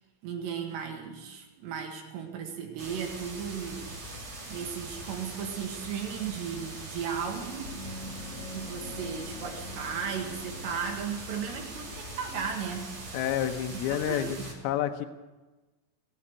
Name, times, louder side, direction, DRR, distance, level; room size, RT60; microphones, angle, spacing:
voice 1, 0.2-3.9 4.5-7.7 8.5-12.9 13.7-14.5, right 7 dB, 70° right, 2 dB, 3.8 m, -36 dB
sound 1, 2.8-14.5, right 2 dB, 40° right, 3.3 m, -42 dB
Gong, 7.6-12.9, left 2 dB, 55° left, 3.2 m, -45 dB
voice 2, 13.1-14.4 14.6-15.1, left 11 dB, 80° left, 7 dB, 2.3 m, -29 dB
19.0 x 7.1 x 9.6 m, 1.2 s
omnidirectional pair, 5.5 m